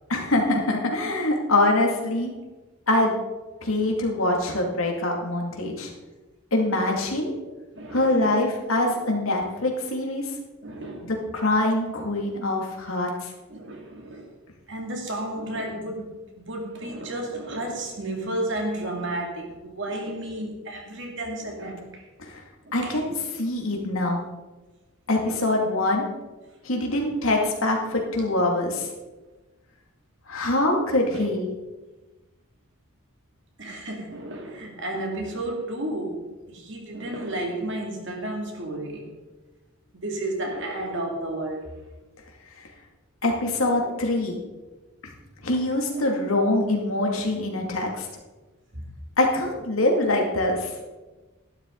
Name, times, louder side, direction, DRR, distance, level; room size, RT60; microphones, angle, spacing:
voice 1, 0.1-2.3 2.9-3.1 3.6-5.9 6.5-7.3 7.9-10.2 11.0-13.3 22.2-22.4 22.7-24.2 25.1-26.0 26.6-28.9 30.3-31.5 43.2-44.4 45.0-45.1 45.4-48.1 49.2-50.7, left 2 dB, 80° left, 1 dB, 2.4 m, -24 dB
voice 2, 7.7-8.4 8.8-9.0 10.6-11.1 13.5-14.3 14.7-22.0 22.6-23.0 25.1-25.4 26.9-27.0 27.8-28.3 31.1-31.3 33.6-39.1 39.9-41.7 43.7-43.9 45.9-46.4 48.7-48.8 49.7-49.8, right 1 dB, 60° right, 1 dB, 2.5 m, -33 dB
13.0 x 11.5 x 3.9 m, 1.2 s
head